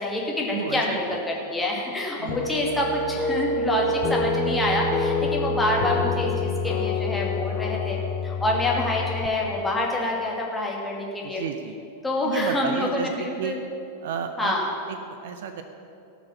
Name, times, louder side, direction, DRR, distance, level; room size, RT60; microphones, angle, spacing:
voice 1, 0.0-11.4 12.0-13.6 14.4-14.7, left 2 dB, 10° left, -3 dB, 2.3 m, -27 dB
voice 2, 0.5-1.2 2.2-2.5 5.2-5.3 11.2-11.8 12.2-13.6 14.0-14.5 14.9-15.6, right 7 dB, 55° right, 8 dB, 0.7 m, -32 dB
sound 1, 2.3-9.3, left 2 dB, 35° left, 1.1 m, -27 dB
17.5 x 6.2 x 5.7 m, 2.7 s
figure-of-eight pair, 90°, 0 cm